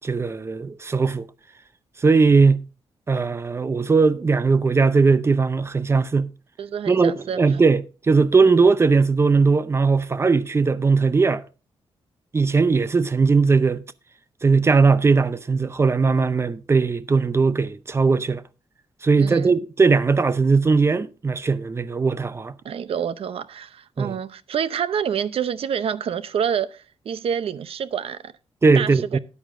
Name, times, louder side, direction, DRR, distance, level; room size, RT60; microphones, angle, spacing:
voice 1, 0.0-1.3 2.0-2.6 3.1-6.3 6.9-7.8 8.1-11.4 12.3-13.8 14.4-18.4 19.0-22.5 24.0-24.2 28.6-29.2, right 4 dB, 25° right, 0.6 m, -19 dB
voice 2, 6.6-7.6 19.2-19.5 22.6-28.3 28.7-29.2, right 8 dB, 65° right, 0.7 m, -28 dB
13.5 x 9.5 x 2.6 m
wide cardioid pair, 140°, 11 cm